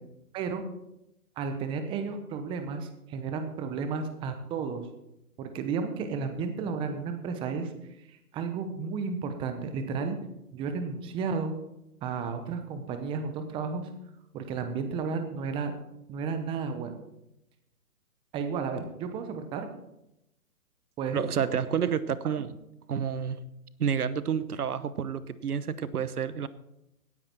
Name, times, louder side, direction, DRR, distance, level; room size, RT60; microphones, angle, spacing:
voice 1, 1.4-4.9 5.4-7.7 8.1-10.2 10.5-11.6 12.0-13.9 14.3-15.7 16.1-17.0 18.3-19.7 21.0-21.3, right 5 dB, 10° right, 7 dB, 0.8 m, -33 dB
voice 2, 21.1-22.5 22.9-23.4 23.8-26.5, right 7 dB, 80° right, 16 dB, 1.1 m, -29 dB
17.5 x 9.9 x 4.5 m, 0.87 s
hypercardioid pair, 140°, 45 cm